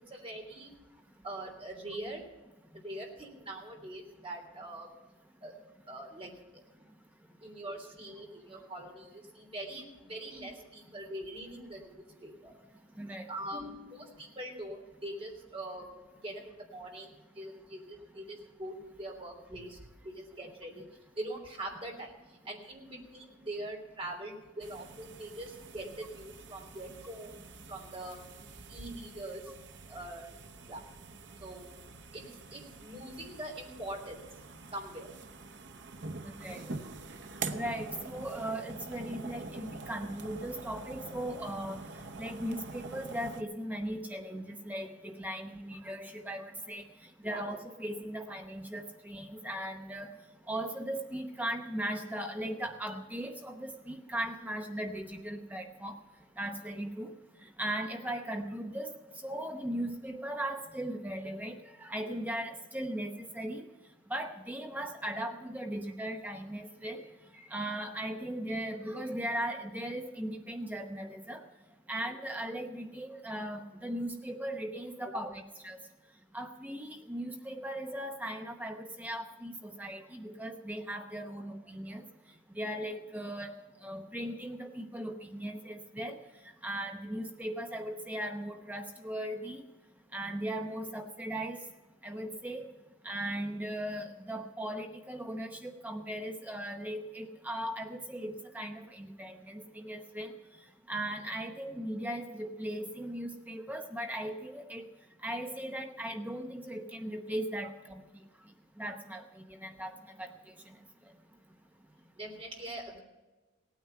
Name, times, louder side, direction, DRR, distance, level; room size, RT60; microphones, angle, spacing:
voice 1, 0.1-0.7 1.2-2.2 2.7-4.9 5.4-5.5 5.9-6.3 7.4-12.5 13.3-20.8 21.2-28.2 28.7-29.5 29.9-30.3 30.7-30.8 31.4-31.7 32.1-32.2 32.5-34.2 34.7-35.1 47.2-47.4 75.1-75.2 112.2-113.0, right 1 dB, 30° right, 1 dB, 3.3 m, -43 dB
voice 2, 13.0-14.1 36.2-36.7 37.5-41.8 42.2-46.8 47.2-50.1 50.5-56.0 56.4-57.1 57.4-58.9 59.2-63.6 64.1-67.1 67.3-71.4 71.9-75.8 76.3-82.0 82.6-83.5 83.8-86.2 86.6-89.6 90.1-91.6 92.0-92.7 93.0-100.3 100.9-104.8 105.2-108.0 108.8-110.3, right 1 dB, 10° right, 4 dB, 0.8 m, -38 dB
sound 1, 24.6-43.4, right 3 dB, 60° right, 0.9 m, -45 dB
17.5 x 9.5 x 5.7 m, 1.1 s
head